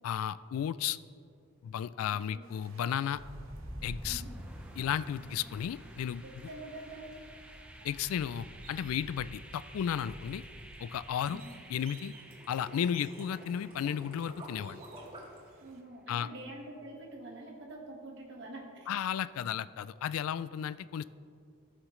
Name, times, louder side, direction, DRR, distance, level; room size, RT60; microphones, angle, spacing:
voice 1, 0.0-1.0 1.6-3.2 3.8-4.2 4.8-6.2 7.8-10.4 10.8-11.4 11.7-12.1 12.5-14.8 16.1-16.3 18.9-21.0, left 9 dB, 80° left, 16 dB, 0.3 m, -34 dB
sound 1, 2.4-15.8, right 4 dB, 70° right, 1.1 m, -60 dB
sound 2, 3.1-14.9, equal, 5° right, 0.5 m, -48 dB
voice 2, 5.0-5.4 6.2-7.1 11.2-11.5 15.6-18.9, right 2 dB, 55° right, 0 dB, 1.6 m, -46 dB
sound 3, 9.4-15.5, right 1 dB, 25° right, 1.8 m, -50 dB
16.5 x 6.3 x 3.2 m, 2.3 s
head